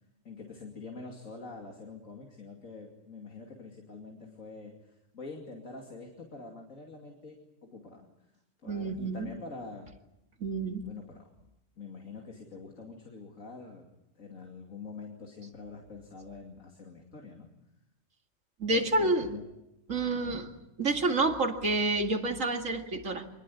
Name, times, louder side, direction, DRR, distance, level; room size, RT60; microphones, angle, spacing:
voice 1, 0.2-7.4 7.6-8.1 8.6-10.0 10.8-11.3 11.8-13.9 14.2-17.5 18.7-19.4 20.1-20.4, left 4 dB, 90° left, 1 dB, 3.0 m, -45 dB
voice 2, 8.7-9.3 10.4-10.8 18.6-19.3 19.9-20.5 20.8-23.2, right 2 dB, 80° right, 4 dB, 2.6 m, -28 dB
25.5 x 20.5 x 8.4 m, 0.89 s
omnidirectional pair, 1.3 m